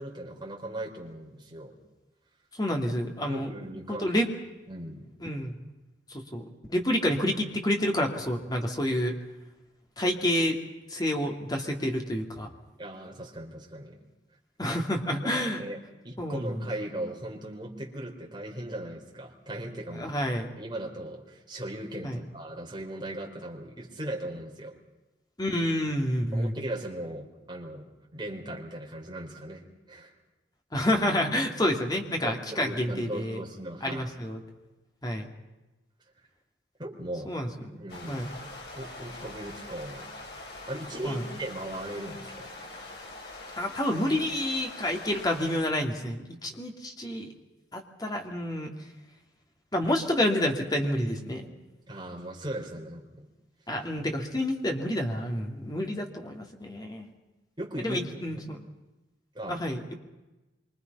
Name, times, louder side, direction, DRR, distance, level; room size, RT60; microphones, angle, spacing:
voice 1, 0.0-1.8 3.3-4.1 4.7-5.1 12.8-14.0 15.3-20.2 20.6-24.8 26.3-30.1 32.2-34.0 36.8-37.3 37.8-38.3 38.7-40.1 40.7-42.5 51.9-53.3 57.6-58.0 58.3-58.4 59.3-59.7, right 1 dB, 25° right, -1 dB, 4.4 m, -38 dB
voice 2, 2.6-3.5 3.9-4.3 5.2-5.6 6.1-9.2 10.0-10.6 10.9-12.5 14.6-15.6 16.2-16.6 19.9-20.5 22.0-22.2 25.4-26.5 30.7-33.4 33.8-34.4 35.0-35.3 37.3-37.8 38.1-38.3 41.0-41.2 43.6-47.3 47.7-48.7 49.7-51.5 53.7-57.1 57.8-58.4 59.5-59.9, left 1 dB, 20° left, 2 dB, 2.8 m, -29 dB
sound 1, 37.9-45.6, left 2 dB, 65° left, 7.4 m, -43 dB
26.5 x 25.0 x 5.6 m, 1.0 s
head